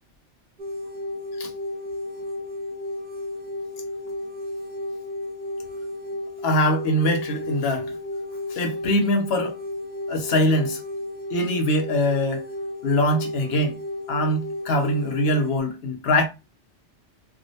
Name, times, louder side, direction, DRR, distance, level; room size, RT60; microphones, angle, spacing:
sound 1, 0.6-15.6, left 1 dB, 55° right, 0.5 m, -33 dB
voice 1, 6.4-7.9 8.5-9.6 10.1-10.8 11.3-12.4 12.8-13.8 14.1-16.3, left 1 dB, 65° left, 0.8 m, -23 dB
2.4 x 2.0 x 2.6 m
omnidirectional pair, 1.2 m